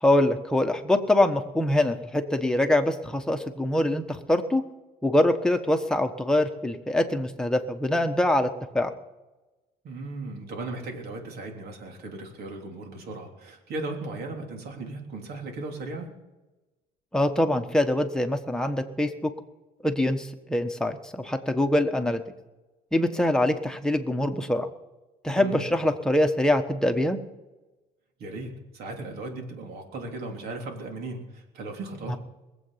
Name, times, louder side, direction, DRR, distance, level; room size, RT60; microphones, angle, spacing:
voice 1, 0.0-4.6 5.0-8.5 8.7-8.9 17.1-19.3 19.8-22.2 22.9-24.7 25.2-27.2 32.1-32.2, left 1 dB, 5° left, 5 dB, 1.3 m, -24 dB
voice 2, 9.8-16.1 25.3-25.8 28.2-32.2, right 2 dB, 70° right, 2 dB, 3.3 m, -37 dB
21.0 x 8.1 x 5.8 m, 1.1 s
cardioid pair, 110°, 17 cm